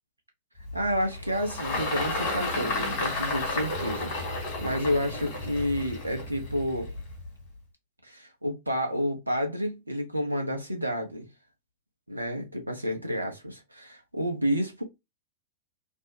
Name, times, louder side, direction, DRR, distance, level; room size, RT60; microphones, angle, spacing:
Engine, 0.7-7.3, left 2 dB, 50° left, 1.9 m, -32 dB
voice 1, 0.7-4.1 4.6-6.9 8.0-11.3 12.1-14.8, equal, 85° right, 0.8 m, -30 dB
3.5 x 2.2 x 2.7 m
figure-of-eight pair, 90°, 0 cm